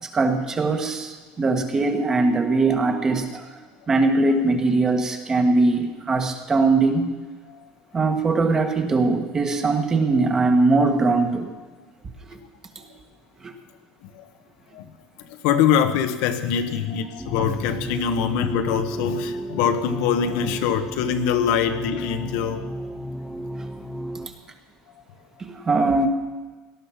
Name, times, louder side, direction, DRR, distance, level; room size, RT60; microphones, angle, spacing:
voice 1, 0.0-3.6 3.9-7.1 7.9-11.5 12.7-12.9 17.8-17.9 23.6-23.7 25.4-26.1, right 3 dB, 20° right, 6 dB, 1.4 m, -21 dB
voice 2, 15.3-22.7, left 8 dB, 75° left, 8 dB, 1.3 m, -23 dB
sound 1, 17.2-24.3, right 1 dB, ahead, 0.5 m, -33 dB
18.5 x 12.0 x 6.0 m, 1.3 s
cardioid pair, 170°, 3 cm